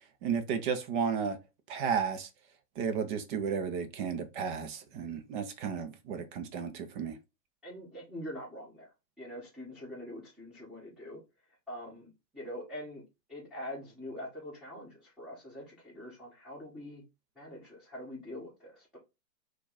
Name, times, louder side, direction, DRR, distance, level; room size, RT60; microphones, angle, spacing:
voice 1, 0.2-1.4 1.7-2.3 2.8-7.2, right 6 dB, 30° right, 0.6 m, -33 dB
voice 2, 7.6-8.9 9.2-11.2 11.7-13.0 13.3-17.0 17.3-19.0, left 1 dB, ahead, 1.6 m, -44 dB
4.5 x 2.4 x 4.0 m
hypercardioid pair, 120°, 49 cm